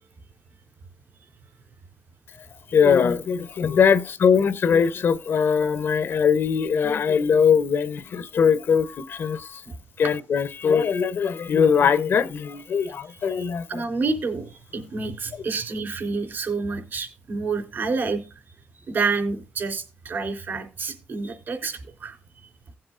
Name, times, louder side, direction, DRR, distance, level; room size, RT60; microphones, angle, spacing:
voice 1, 2.7-9.6 10.0-13.8 15.3-15.4, left 6 dB, 70° left, 0.8 m, -21 dB
voice 2, 13.7-18.2 18.8-22.2, right 4 dB, 60° right, 3.5 m, -28 dB
17.5 x 7.7 x 2.5 m
cardioid pair, 105°, 4 cm